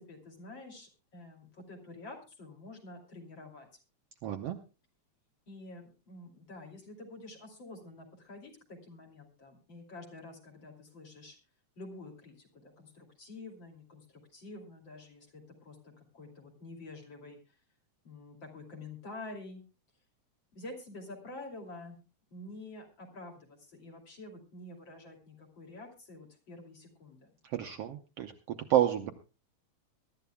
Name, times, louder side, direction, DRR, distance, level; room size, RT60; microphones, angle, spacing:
voice 1, 0.0-3.7 5.5-11.4 11.8-17.6 18.0-19.6 20.5-22.0 22.3-27.3, left 2 dB, 40° left, 1 dB, 3.3 m, -48 dB
voice 2, 4.2-4.6 27.4-29.1, right 11 dB, 70° right, 5 dB, 1.6 m, -30 dB
23.0 x 12.5 x 2.3 m, 0.31 s
omnidirectional pair, 3.4 m